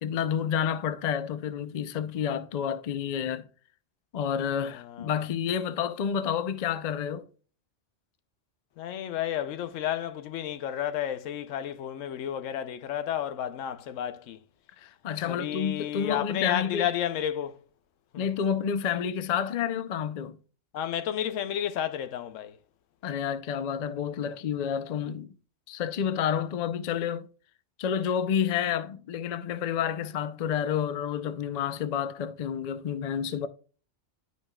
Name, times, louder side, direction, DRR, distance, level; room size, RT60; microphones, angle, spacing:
voice 1, 0.0-3.4 4.1-7.3 14.8-16.9 18.2-20.4 23.0-25.3 25.7-27.3 27.8-33.5, left 8 dB, 55° left, 0.4 m, -29 dB
voice 2, 4.7-5.1 8.8-14.4 15.2-17.6 18.1-18.3 20.7-22.6, left 10 dB, 85° left, 1.0 m, -31 dB
10.5 x 5.2 x 2.2 m
omnidirectional pair, 1.3 m